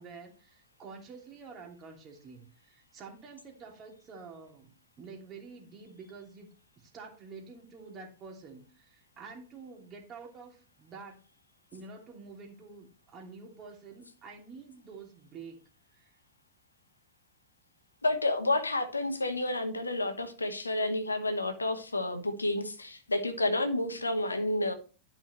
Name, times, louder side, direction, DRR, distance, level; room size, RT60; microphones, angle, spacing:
voice 1, 0.0-6.5 6.8-11.2 11.7-15.6 15.9-16.2, right 4 dB, 30° right, 1 dB, 2.8 m, -48 dB
voice 2, 18.0-24.7, left 2 dB, 80° left, 8 dB, 1.2 m, -30 dB
12.5 x 5.8 x 3.1 m, 0.36 s
figure-of-eight pair, 90°, 0 cm